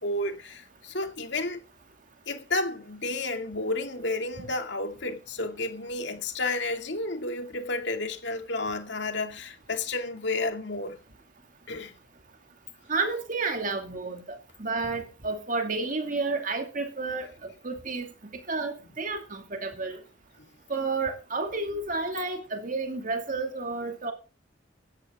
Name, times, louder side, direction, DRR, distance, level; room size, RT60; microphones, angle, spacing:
voice 1, 0.0-1.6 2.3-11.0 11.7-12.0 20.4-20.5, left 2 dB, 65° left, 2.5 m, -31 dB
voice 2, 12.9-18.1 18.5-20.0 20.7-24.1, right 3 dB, 45° right, 2.3 m, -31 dB
17.5 x 13.5 x 3.7 m
head